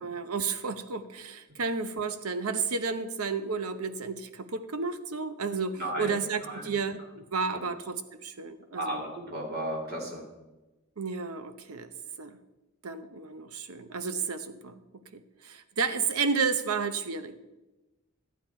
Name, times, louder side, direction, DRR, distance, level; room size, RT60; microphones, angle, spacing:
voice 1, 0.0-8.9 11.0-11.9 12.2-12.4 12.8-14.8 15.1-17.4, right 5 dB, 90° right, 10 dB, 0.8 m, -32 dB
voice 2, 5.7-6.2 6.4-6.6 7.5-7.6 8.7-10.2, right 1 dB, 45° right, 0 dB, 2.3 m, -34 dB
13.0 x 9.4 x 4.4 m, 1.1 s
head